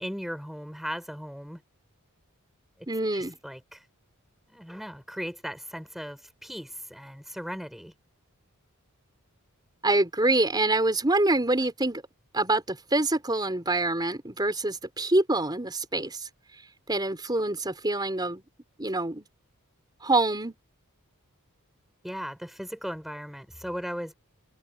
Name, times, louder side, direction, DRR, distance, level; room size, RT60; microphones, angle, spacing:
voice 1, 0.0-1.6 2.8-2.9 3.1-3.9 4.5-7.9 22.0-24.1, equal, ahead, 5.5 m, -37 dB
voice 2, 2.9-3.4 9.8-12.0 12.3-16.3 16.9-18.4 18.8-19.3 20.0-20.5, right 2 dB, 20° right, 4.4 m, -25 dB
head